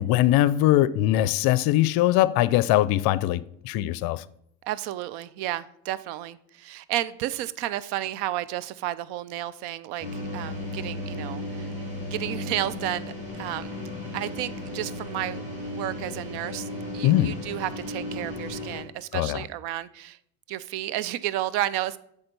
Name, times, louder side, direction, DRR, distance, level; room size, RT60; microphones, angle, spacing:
voice 1, 0.0-4.2 17.0-17.4 19.1-19.4, left 14 dB, 55° left, 0.5 m, -21 dB
voice 2, 4.6-10.1 10.3-11.7 12.1-13.7 14.1-15.4 15.7-16.7 16.9-20.2 20.5-22.0, right 14 dB, 60° right, 0.6 m, -32 dB
sound 1, 10.0-18.8, left 1 dB, 15° right, 3.0 m, -35 dB
7.8 x 3.6 x 5.3 m
hypercardioid pair, 85°, 45 cm